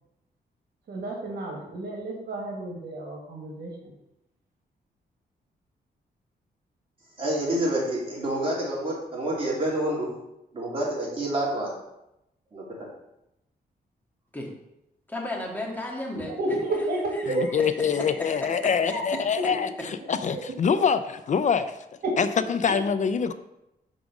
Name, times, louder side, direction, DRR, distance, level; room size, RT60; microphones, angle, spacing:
voice 1, 0.9-3.9 16.3-17.5 18.9-19.0 19.4-19.5 19.8-19.9 20.3-20.4 20.7-20.8 22.0-22.2, right 2 dB, 75° right, -1 dB, 1.8 m, -31 dB
voice 2, 7.2-10.1 10.5-11.7 12.5-12.9, right 1 dB, 35° right, -5 dB, 2.8 m, -28 dB
voice 3, 15.1-16.3 17.3-19.3, left 1 dB, 10° left, -2 dB, 1.7 m, -35 dB
voice 4, 17.3-21.8 22.2-23.3, left 6 dB, 50° left, 12 dB, 0.4 m, -25 dB
5.3 x 5.0 x 6.0 m, 0.87 s
wide cardioid pair, 125°, 17 cm